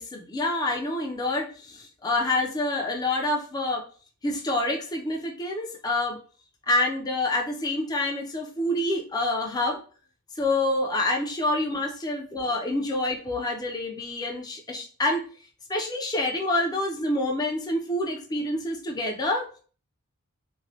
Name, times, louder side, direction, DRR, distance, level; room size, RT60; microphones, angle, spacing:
voice 1, 0.0-3.9 4.2-6.2 6.7-9.8 10.4-15.3 15.7-19.6, left 2 dB, 20° left, 1 dB, 0.5 m, -27 dB
3.0 x 2.2 x 2.7 m, 0.40 s
head